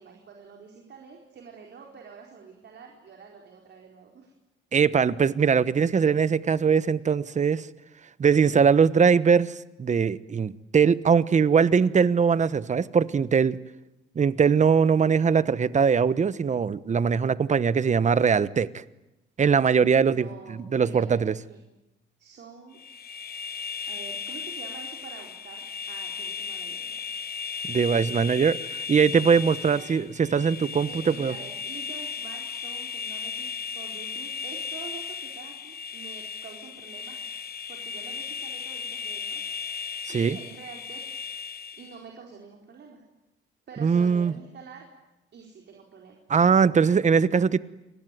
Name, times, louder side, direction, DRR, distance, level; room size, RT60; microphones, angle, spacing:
voice 1, 0.0-4.3 20.0-21.2 21.5-21.6 22.2-22.8 23.9-27.0 29.6-29.9 30.8-37.2 37.7-39.5 40.1-41.0 41.8-43.0 43.7-44.9 45.3-46.2, right 6 dB, 60° right, 1 dB, 4.6 m, -46 dB
voice 2, 4.7-7.7 8.2-13.6 14.1-18.8 19.4-21.3 27.7-31.3 40.1-40.4 43.8-44.3 46.3-47.6, right 6 dB, 35° right, 16 dB, 1.1 m, -21 dB
sound 1, 22.7-42.0, left 6 dB, 50° left, 1.5 m, -36 dB
29.0 x 21.0 x 9.3 m, 0.96 s
cardioid pair, 90°, 20 cm